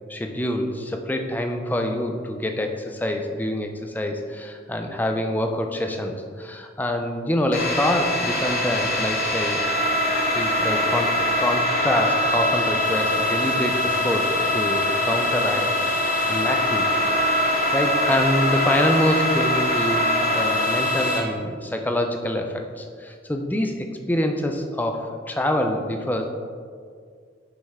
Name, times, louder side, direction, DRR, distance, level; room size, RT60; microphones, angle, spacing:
voice 1, 0.1-9.6 10.3-15.7 16.3-17.0 17.7-26.2, left 1 dB, 10° left, 4 dB, 0.4 m, -26 dB
sound 1, 7.5-21.2, left 1 dB, 45° left, 1.4 m, -23 dB
7.0 x 5.4 x 3.6 m, 2.1 s
head